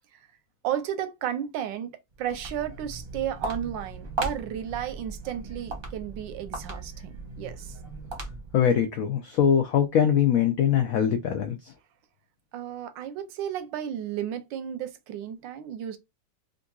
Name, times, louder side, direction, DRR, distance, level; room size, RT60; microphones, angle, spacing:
voice 1, 0.6-1.9 2.2-7.8 12.5-16.0, right 10 dB, 80° right, 1.3 m, -33 dB
Walk footsteps, 2.1-8.7, right 3 dB, 45° right, 0.7 m, -37 dB
voice 2, 8.5-11.7, left 8 dB, 80° left, 0.7 m, -22 dB
3.7 x 2.5 x 2.3 m
omnidirectional pair, 2.0 m